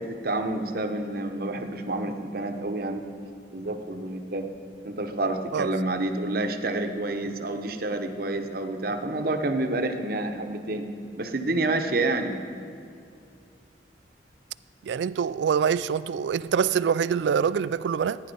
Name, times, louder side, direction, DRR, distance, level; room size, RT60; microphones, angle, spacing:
voice 1, 0.0-3.0 3.5-4.5 4.8-10.9 11.2-12.4, right 2 dB, 50° right, 0.8 m, -28 dB
voice 2, 14.8-18.2, right 7 dB, 70° right, 0.3 m, -25 dB
14.5 x 9.8 x 5.4 m
head